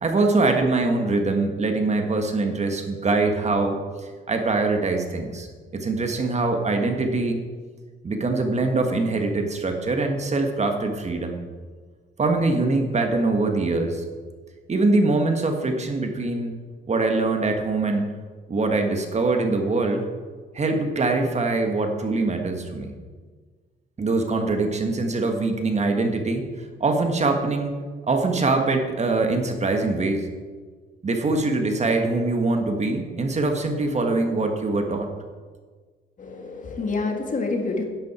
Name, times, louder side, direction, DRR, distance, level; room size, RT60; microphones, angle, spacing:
voice 1, 0.0-3.8 4.3-5.5 5.7-7.4 8.0-11.4 12.2-14.0 14.7-16.5 16.9-18.0 18.5-20.0 20.5-22.9 24.0-26.5 26.8-27.7 28.1-30.3 31.0-35.1, right 3 dB, 35° right, 4 dB, 1.6 m, -23 dB
voice 2, 36.2-37.8, left 3 dB, 40° left, 3 dB, 2.0 m, -27 dB
11.0 x 10.5 x 4.4 m, 1.5 s
cardioid pair, 90°, 20 cm